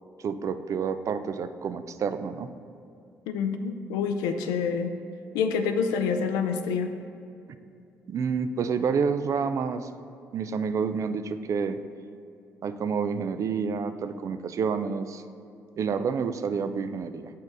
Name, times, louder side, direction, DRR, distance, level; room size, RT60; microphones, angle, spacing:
voice 1, 0.2-2.5 8.1-9.9 10.3-11.8 12.6-15.2 15.8-17.3, right 6 dB, 55° right, 11 dB, 0.4 m, -29 dB
voice 2, 3.3-4.9 5.3-6.9, left 6 dB, 85° left, 7 dB, 0.4 m, -27 dB
7.3 x 4.5 x 4.7 m, 2.6 s
supercardioid pair, 55°, 6 cm